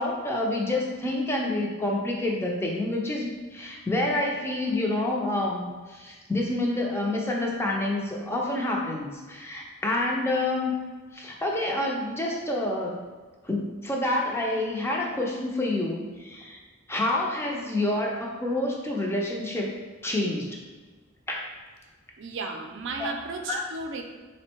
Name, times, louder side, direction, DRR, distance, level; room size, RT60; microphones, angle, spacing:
voice 1, 0.0-10.8 11.1-13.0 13.4-16.6 16.9-20.6 21.3-21.5 23.0-23.1 23.5-23.6, left 1 dB, 10° left, -1 dB, 0.5 m, -28 dB
voice 2, 22.2-24.0, right 3 dB, 65° right, 4 dB, 0.5 m, -34 dB
3.6 x 2.1 x 4.4 m, 1.4 s
head